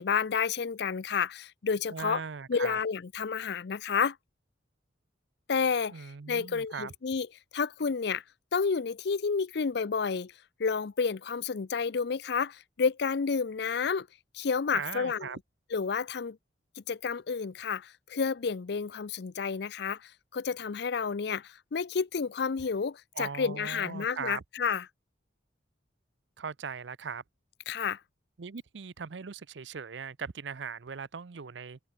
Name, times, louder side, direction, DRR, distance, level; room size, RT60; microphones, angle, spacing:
voice 1, 0.0-2.2 2.5-4.2 5.5-7.3 7.5-8.2 8.5-10.3 10.6-14.1 14.3-15.3 15.7-16.4 16.8-24.9 27.7-28.0, left 5 dB, 60° left, 0.5 m, -30 dB
voice 2, 1.9-2.8 5.9-6.9 14.7-15.4 23.2-24.4 26.4-27.2 28.4-31.8, right 6 dB, 70° right, 0.6 m, -39 dB
open air
head